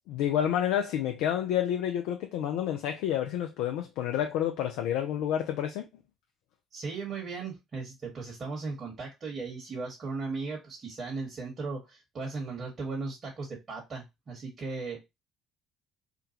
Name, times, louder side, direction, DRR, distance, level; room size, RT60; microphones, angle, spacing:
voice 1, 0.0-5.9, left 10 dB, 75° left, 0.3 m, -29 dB
voice 2, 6.7-15.0, right 4 dB, 45° right, 1.3 m, -37 dB
3.7 x 2.3 x 2.8 m
hypercardioid pair, 55°, 0 cm